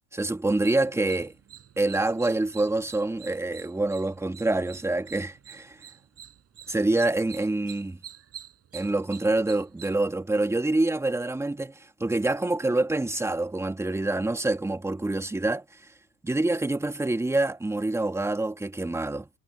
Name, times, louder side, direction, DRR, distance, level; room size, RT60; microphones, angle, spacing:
voice 1, 0.1-1.3 1.8-5.8 6.7-8.0 8.7-15.6 16.2-19.3, right 2 dB, 5° right, 1.8 m, -26 dB
sound 1, 0.6-9.9, right 10 dB, 35° right, 7.7 m, -48 dB
supercardioid pair, 100°, 41 cm